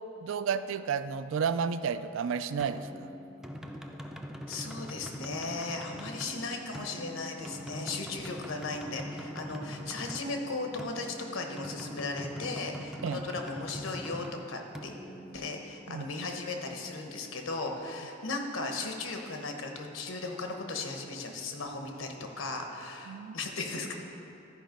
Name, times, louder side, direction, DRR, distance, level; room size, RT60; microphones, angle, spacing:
voice 1, 0.2-2.9 13.0-13.2 15.9-16.1 23.1-23.4, right 6 dB, 70° right, 12 dB, 0.3 m, -31 dB
sound 1, 2.6-16.1, equal, ahead, 0.4 m, -43 dB
voice 2, 4.5-14.9 15.3-24.0, left 3 dB, 85° left, 3 dB, 1.1 m, -37 dB
12.5 x 5.0 x 5.2 m, 2.9 s
head